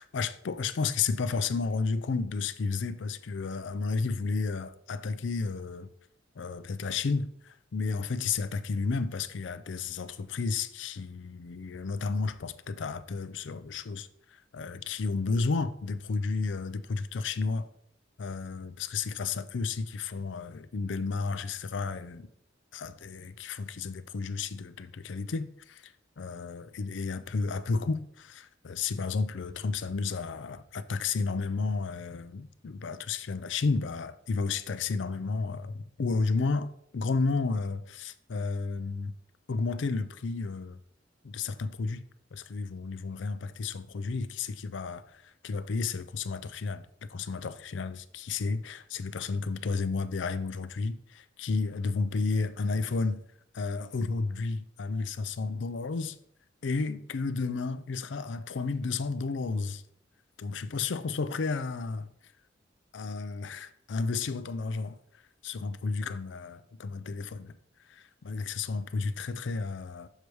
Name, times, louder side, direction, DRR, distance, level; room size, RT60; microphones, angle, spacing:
voice 1, 0.0-5.9 6.4-14.1 14.5-17.7 18.2-22.3 22.7-39.1 39.5-40.8 41.2-42.0 42.3-46.9 47.1-53.2 53.5-56.2 56.6-59.8 60.4-62.1 62.9-65.0 65.4-67.6 67.9-70.1, left 4 dB, 70° left, 0.5 m, -32 dB
6.7 x 4.6 x 4.7 m
head